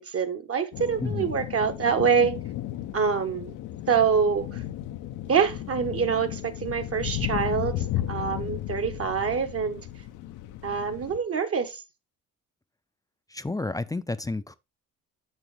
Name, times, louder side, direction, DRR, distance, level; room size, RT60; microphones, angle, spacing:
voice 1, 0.0-2.3 2.9-3.5 3.9-4.6 5.3-9.8 10.6-11.8, right 6 dB, 50° right, 1.3 m, -25 dB
sound 1, 0.7-11.2, left 13 dB, 85° left, 0.7 m, -34 dB
voice 2, 13.3-14.5, left 2 dB, 10° left, 0.5 m, -31 dB
7.1 x 6.1 x 3.3 m
cardioid pair, 90°, 30 cm